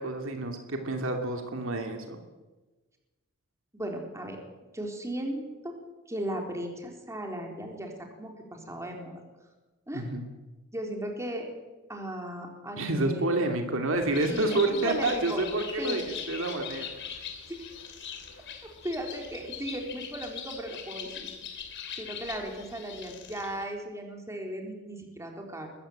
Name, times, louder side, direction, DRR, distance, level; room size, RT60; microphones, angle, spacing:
voice 1, 0.0-2.2 9.9-10.2 12.8-16.9, right 2 dB, 65° right, 4 dB, 2.6 m, -29 dB
voice 2, 3.7-4.4 4.7-5.7 6.1-9.1 9.9-10.1 10.7-11.5 11.9-13.5 14.2-15.4 15.8-16.0 18.8-21.3 22.0-25.7, right 1 dB, 15° right, 2 dB, 3.9 m, -36 dB
Bird, 13.9-23.6, left 7 dB, 60° left, 3.0 m, -41 dB
21.5 x 14.5 x 9.1 m, 1.2 s
head